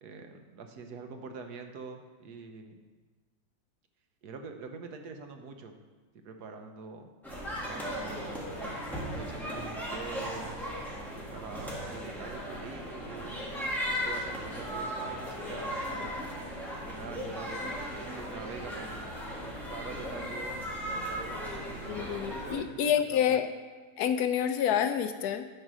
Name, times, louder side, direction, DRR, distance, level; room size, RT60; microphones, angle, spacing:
voice 1, 0.0-2.8 4.2-5.8 6.2-7.1 7.6-8.3 8.9-10.7 11.3-13.6 13.9-16.2 16.8-19.2 19.7-23.4, right 5 dB, 75° right, 5 dB, 1.4 m, -45 dB
sound 1, 7.2-22.5, equal, ahead, 1.7 m, -37 dB
voice 2, 21.9-23.5 24.0-25.5, left 9 dB, 75° left, 9 dB, 1.1 m, -28 dB
10.0 x 4.8 x 6.1 m, 1.3 s
omnidirectional pair, 1.7 m